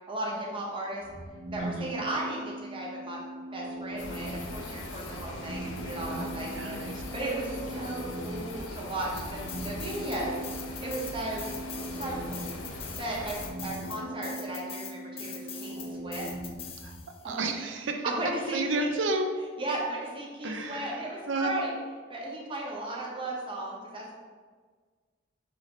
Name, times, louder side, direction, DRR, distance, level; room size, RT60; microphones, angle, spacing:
voice 1, 0.1-1.0 1.5-3.2 3.5-10.4 10.8-12.6 13.0-16.3 17.2-17.4 18.0-18.9 19.6-21.7 22.1-24.2, right 1 dB, 25° right, -3 dB, 0.8 m, -35 dB
sound 1, 1.0-17.0, right 1 dB, 90° right, 1.0 m, -41 dB
voice 2, 1.6-1.9 6.1-7.0 9.2-9.6 11.4-11.5 16.8-17.0 17.2-17.9 18.5-19.3 20.4-21.0 21.3-21.5, right 3 dB, 70° right, 4 dB, 0.5 m, -32 dB
sound 2, 4.0-13.5, left 2 dB, 75° left, 0.6 m, -41 dB
sound 3, 9.2-10.2 10.4-17.3, left 7 dB, 30° left, 0.4 m, -42 dB
4.3 x 2.7 x 4.0 m, 1.5 s
head